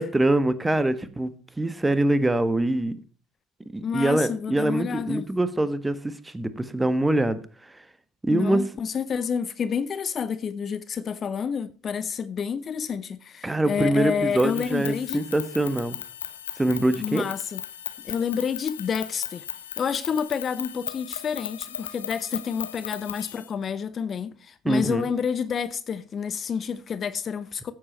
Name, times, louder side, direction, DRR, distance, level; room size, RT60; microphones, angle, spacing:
voice 1, 0.0-2.9 3.7-7.4 8.2-8.6 13.4-16.0 16.6-17.2 24.6-25.0, right 1 dB, 15° right, 1.3 m, -24 dB
voice 2, 3.8-5.3 8.3-15.2 17.0-17.6 18.0-19.4 19.8-27.7, left 7 dB, 40° left, 0.8 m, -29 dB
sound 1, 14.3-23.5, left 10 dB, 80° left, 0.8 m, -37 dB
15.0 x 7.7 x 4.4 m
figure-of-eight pair, 55°, 0 cm